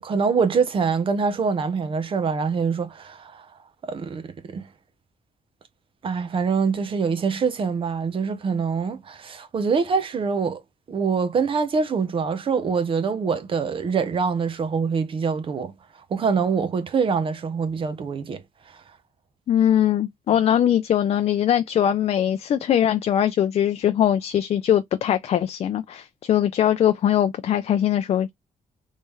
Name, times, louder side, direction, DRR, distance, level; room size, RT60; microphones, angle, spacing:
voice 1, 0.0-3.4 3.9-4.7 6.0-10.6 10.9-15.7 16.1-18.4, right 5 dB, 35° right, 0.6 m, -24 dB
voice 2, 19.5-28.3, left 10 dB, 45° left, 0.4 m, -21 dB
3.1 x 2.7 x 3.7 m
wide cardioid pair, 175°, 15 cm